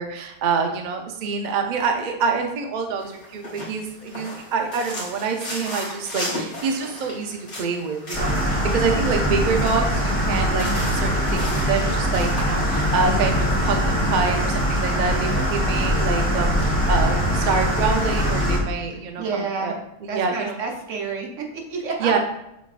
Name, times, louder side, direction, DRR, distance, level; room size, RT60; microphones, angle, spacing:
voice 1, 0.0-19.8 20.1-20.5 22.0-22.2, right 5 dB, 55° right, 4 dB, 0.5 m, -26 dB
sound 1, 3.0-13.1, left 1 dB, 65° left, 2.0 m, -36 dB
sound 2, 8.1-18.6, equal, 10° left, 1.3 m, -22 dB
voice 2, 19.2-19.8 20.1-22.1, right 4 dB, 75° right, 1 dB, 1.2 m, -29 dB
6.1 x 3.4 x 2.4 m, 0.84 s
omnidirectional pair, 1.3 m